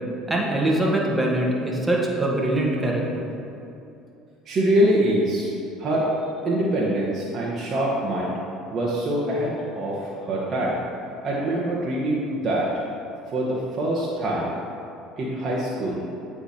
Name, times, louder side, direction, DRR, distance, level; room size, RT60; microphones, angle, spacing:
voice 1, 0.3-3.3, right 1 dB, 15° right, -2 dB, 1.3 m, -23 dB
voice 2, 4.5-5.5 5.8-6.1 6.4-8.3 8.7-10.8 11.2-12.7 13.3-14.5 15.2-16.0, right 1 dB, 45° right, -5 dB, 1.0 m, -24 dB
8.1 x 4.8 x 2.8 m, 2.7 s
hypercardioid pair, 75°, 0 cm